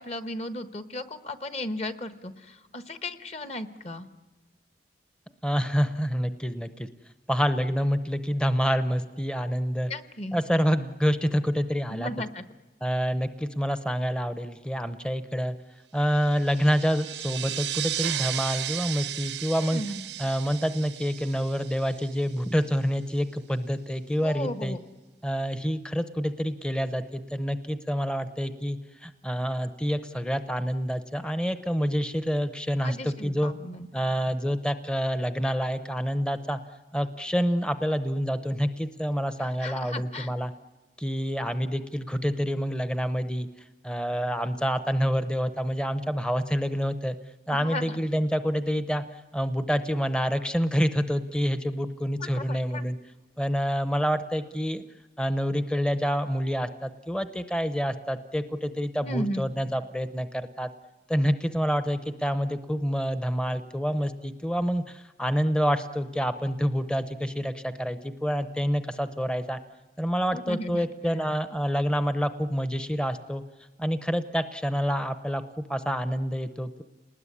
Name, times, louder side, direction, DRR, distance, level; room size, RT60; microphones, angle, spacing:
voice 1, 0.0-4.1 9.9-10.4 11.9-12.4 19.6-20.0 24.2-24.8 32.8-33.9 39.6-40.3 47.5-48.0 52.2-52.8 59.0-59.4 70.3-70.8, left 1 dB, 35° left, 10 dB, 1.2 m, -35 dB
voice 2, 5.4-6.9 7.3-9.9 10.3-12.1 12.8-15.6 15.9-19.8 20.2-24.8 25.2-33.5 33.9-36.6 36.9-40.5 41.0-43.5 43.8-47.2 47.5-53.0 53.4-54.8 55.2-60.7 61.1-69.6 70.0-73.4 73.8-75.4 75.7-76.8, equal, 5° left, 10 dB, 0.8 m, -27 dB
sound 1, 16.2-22.5, right 12 dB, 85° right, 0.9 m, -35 dB
30.0 x 20.0 x 9.9 m, 1.3 s
head